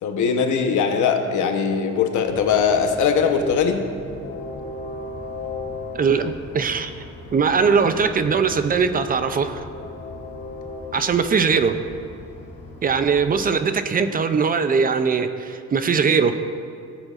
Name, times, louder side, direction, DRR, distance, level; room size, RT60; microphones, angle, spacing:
voice 1, 0.0-3.9, left 6 dB, 75° left, 5 dB, 0.9 m, -20 dB
Train, 2.3-13.5, left 3 dB, 55° left, 1.8 m, -37 dB
voice 2, 5.9-6.9 7.3-9.6 10.9-11.8 12.8-16.4, right 5 dB, 30° right, 9 dB, 0.4 m, -20 dB
17.0 x 8.0 x 2.4 m, 2.5 s
cardioid pair, 150°, 30 cm